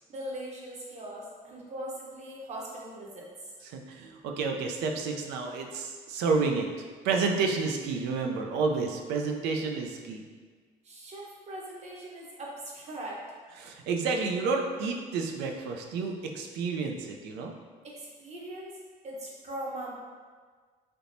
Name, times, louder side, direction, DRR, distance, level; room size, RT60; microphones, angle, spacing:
voice 1, 0.1-3.3 10.8-13.2 17.8-18.7 19.0-19.9, right 1 dB, 40° right, -4 dB, 0.8 m, -40 dB
voice 2, 3.6-6.7 7.0-10.2 13.6-17.5, right 4 dB, 85° right, 2 dB, 0.4 m, -30 dB
3.4 x 2.9 x 2.6 m, 1.5 s
cardioid pair, 110°, 17 cm